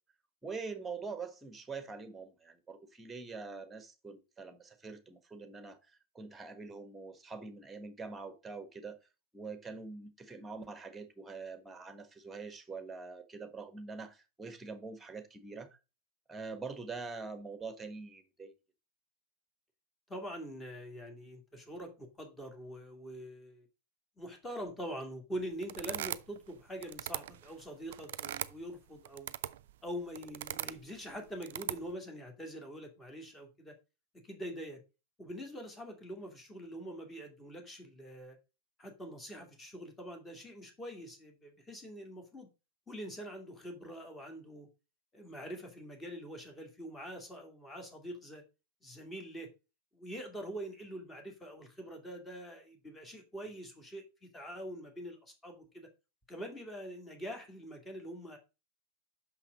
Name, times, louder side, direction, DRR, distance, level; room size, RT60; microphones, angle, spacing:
voice 1, 0.4-9.0 9.3-15.8 16.3-18.5, right 4 dB, 10° right, 1.4 m, -44 dB
voice 2, 20.1-23.7 24.2-29.3 29.8-33.7 34.2-34.8 35.2-38.4 38.8-42.5 42.9-44.7 45.1-48.4 48.8-49.5 49.9-55.9 56.3-58.4, equal, 15° left, 2.4 m, -44 dB
sound 1, 25.6-26.5 26.8-28.6 29.0-29.7 30.1-30.8 31.4-31.9, right 12 dB, 55° right, 0.4 m, -39 dB
6.1 x 5.7 x 5.2 m
figure-of-eight pair, 90°, 0 cm